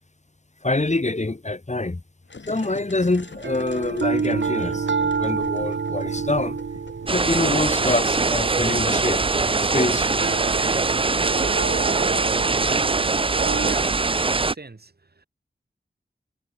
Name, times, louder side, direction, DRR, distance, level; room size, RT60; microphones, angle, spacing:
voice 1, 0.6-2.0 2.5-4.9 5.2-6.6 7.1-9.2 9.6-10.1 10.5-10.8, left 2 dB, 40° left, 2.5 m, -25 dB
sound 1, 2.2-8.1, left 4 dB, 75° left, 7.9 m, -43 dB
sound 2, 3.3-13.7, right 5 dB, 80° right, 1.3 m, -29 dB
sound 3, 7.1-14.5, right 3 dB, 30° right, 0.5 m, -22 dB
voice 2, 13.1-14.9, right 3 dB, 60° right, 6.8 m, -41 dB
cardioid pair, 45°, 19 cm